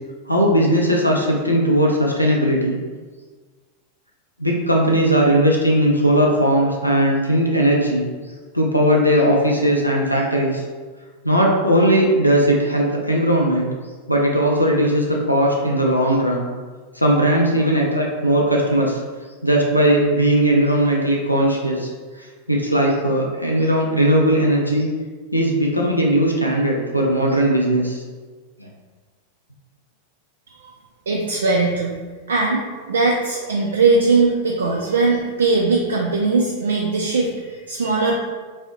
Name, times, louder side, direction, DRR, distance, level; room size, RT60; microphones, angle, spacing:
voice 1, 0.3-2.8 4.4-8.0 8.5-10.6 11.2-13.7 14.1-16.5 16.9-19.0 19.4-21.9 22.2-24.9 25.3-28.0 28.6-28.7, right 1 dB, 90° left, -2 dB, 0.4 m, -18 dB
voice 2, 31.1-32.0 32.3-38.1, right 3 dB, 70° right, -1 dB, 0.3 m, -20 dB
3.0 x 2.6 x 3.0 m, 1.4 s
figure-of-eight pair, 90°, 0 cm